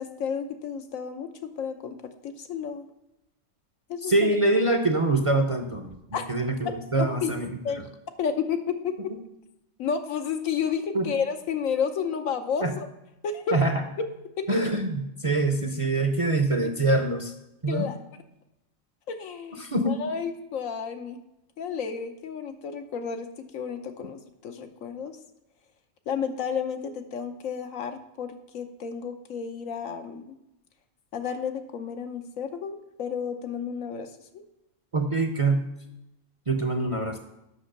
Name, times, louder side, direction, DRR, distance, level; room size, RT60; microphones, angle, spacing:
voice 1, 0.0-2.9 3.9-4.3 6.1-6.3 7.0-7.3 7.6-7.8 8.2-9.1 9.8-12.9 13.2-13.6 14.0-14.1 14.4-14.6 16.6-16.7 17.7-18.0 19.1-21.2 21.6-25.2 26.1-30.4 31.1-34.4, left 6 dB, 80° left, 7 dB, 1.2 m, -31 dB
voice 2, 4.1-7.5 10.9-11.1 12.6-12.7 13.5-13.8 14.5-17.3 17.6-17.9 19.6-20.0 34.9-35.6 36.5-37.2, right 2 dB, 35° right, 5 dB, 0.6 m, -24 dB
8.2 x 6.0 x 6.5 m, 0.90 s
omnidirectional pair, 1.4 m